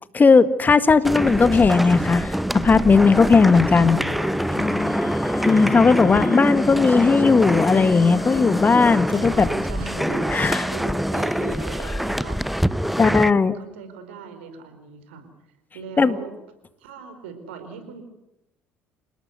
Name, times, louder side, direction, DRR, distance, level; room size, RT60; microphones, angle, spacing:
voice 1, 0.1-4.0 5.4-9.5 10.3-10.6 13.0-13.6 16.0-16.1, left 4 dB, 30° left, 14 dB, 1.7 m, -17 dB
sound 1, 1.1-13.3, equal, ahead, 0.9 m, -25 dB
voice 2, 3.2-4.6 6.0-7.3 9.1-15.3 15.7-16.3 16.8-18.0, right 5 dB, 80° right, 9 dB, 4.6 m, -39 dB
Wind instrument woodwind instrument, 4.5-8.9, left 2 dB, 50° left, 7.0 m, -31 dB
28.5 x 18.5 x 8.1 m, 0.88 s
hypercardioid pair, 60°, 6 cm